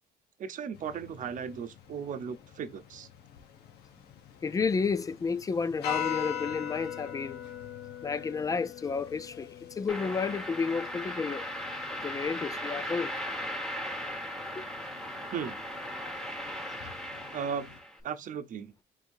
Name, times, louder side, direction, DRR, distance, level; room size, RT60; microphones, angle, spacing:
voice 1, 0.4-3.1 15.3-15.6 17.3-17.7 18.0-18.7, right 7 dB, 50° right, 0.8 m, -36 dB
sound 1, 0.7-17.8, left 9 dB, 75° left, 1.0 m, -43 dB
voice 2, 4.4-7.4 8.0-11.5 11.9-13.1 14.6-14.7, left 5 dB, 20° left, 0.4 m, -31 dB
sound 2, 9.9-18.0, equal, ahead, 1.3 m, -38 dB
4.5 x 4.0 x 2.6 m
cardioid pair, 110°, 17 cm